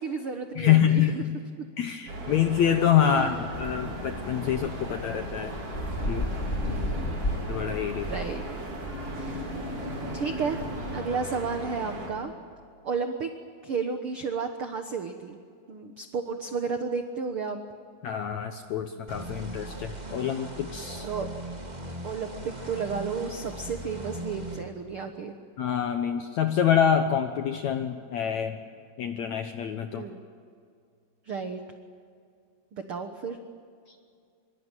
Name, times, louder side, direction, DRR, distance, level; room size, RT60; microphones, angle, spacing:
voice 1, 0.0-1.2 3.0-3.4 6.7-7.3 8.0-8.4 9.1-9.6 10.1-10.6 10.9-12.3 12.8-13.3 13.6-15.4 15.7-17.6 21.0-21.3 22.0-25.4 29.9-30.2 31.3-31.6 32.7-33.4, right 5 dB, 75° right, 6 dB, 1.2 m, -32 dB
voice 2, 0.6-1.4 1.8-5.5 6.1-6.3 7.5-8.1 18.0-21.1 25.6-28.6 29.0-30.0, left 9 dB, 70° left, 7 dB, 1.7 m, -26 dB
sound 1, 2.1-12.1, right 2 dB, 50° right, 5.4 m, -38 dB
sound 2, 3.5-11.0, left 1 dB, 20° left, 2.4 m, -34 dB
sound 3, 19.1-24.6, right 1 dB, 15° right, 1.7 m, -39 dB
25.0 x 24.0 x 9.1 m, 2.3 s
omnidirectional pair, 4.5 m